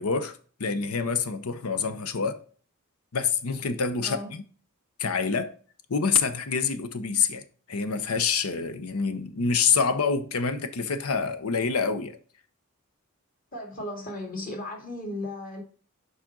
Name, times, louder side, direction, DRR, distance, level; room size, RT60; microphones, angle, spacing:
voice 1, 0.0-2.4 3.1-4.4 5.0-5.5 5.9-12.2, left 5 dB, 90° left, 0.8 m, -27 dB
voice 2, 13.5-15.6, left 1 dB, 40° left, 2.4 m, -35 dB
7.3 x 5.0 x 3.8 m
head